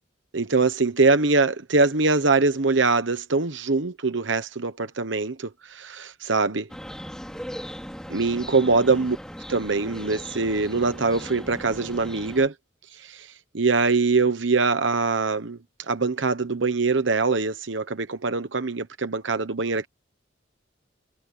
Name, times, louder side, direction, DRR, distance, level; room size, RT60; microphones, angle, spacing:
voice 1, 0.3-6.7 8.1-9.2 9.5-12.5 13.0-15.6 15.9-19.9, right 3 dB, 75° right, 1.1 m, -23 dB
sound 1, 6.7-12.5, equal, 5° left, 4.4 m, -38 dB
head